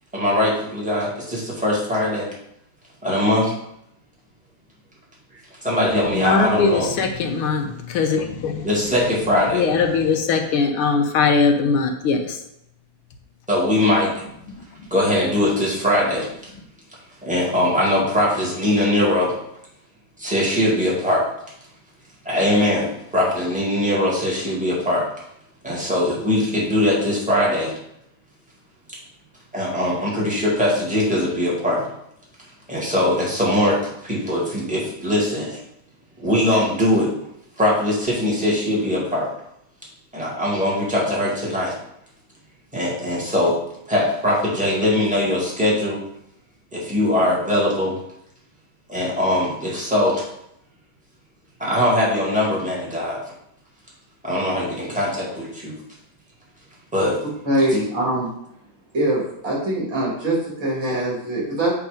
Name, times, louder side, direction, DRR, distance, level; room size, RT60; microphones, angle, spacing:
voice 1, 0.1-2.3 3.0-3.5 5.6-6.9 8.6-9.7 13.5-14.1 14.9-16.5 17.2-19.3 20.2-21.2 22.3-25.0 25.6-27.7 29.5-31.8 32.7-35.6 36.2-37.1 37.6-39.3 40.1-41.7 42.7-43.6 43.9-46.0 46.7-48.0 48.9-50.2 51.6-53.2 54.2-55.7 56.9-57.2 57.7-57.8, left 1 dB, 5° right, 1.9 m, -21 dB
voice 2, 6.2-7.7 7.9-8.6 9.5-12.2, left 4 dB, 85° left, 1.8 m, -20 dB
voice 3, 57.4-58.3 58.9-61.7, right 1 dB, 65° right, 3.5 m, -23 dB
8.4 x 3.6 x 5.1 m
omnidirectional pair, 2.3 m